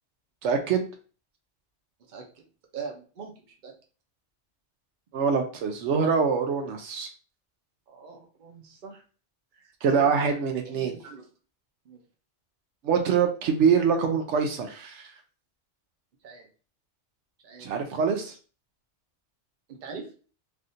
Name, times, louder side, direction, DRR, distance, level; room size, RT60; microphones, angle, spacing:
voice 1, 0.4-0.8 5.1-7.1 9.8-10.9 12.8-15.1 17.6-18.3, right 6 dB, 80° right, 5 dB, 0.9 m, -24 dB
voice 2, 2.1-2.4 2.7-3.7 7.9-9.0 9.5-10.3 10.7-11.3 11.8-12.0 16.2-16.5 17.4-17.7 19.7-20.1, right 5 dB, 50° right, 2 dB, 0.8 m, -42 dB
3.5 x 2.5 x 2.6 m, 0.37 s
omnidirectional pair, 1.2 m